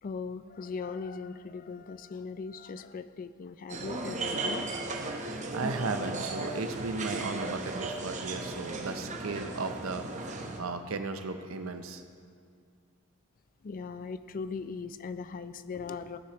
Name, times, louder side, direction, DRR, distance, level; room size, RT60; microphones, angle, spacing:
voice 1, 0.0-4.7 13.6-16.2, left 4 dB, 40° left, 12 dB, 0.3 m, -39 dB
sound 1, 3.7-10.6, right 2 dB, 35° right, 0.7 m, -36 dB
voice 2, 5.1-12.0, right 3 dB, 70° right, 8 dB, 0.6 m, -36 dB
15.5 x 6.5 x 3.0 m, 2.2 s
head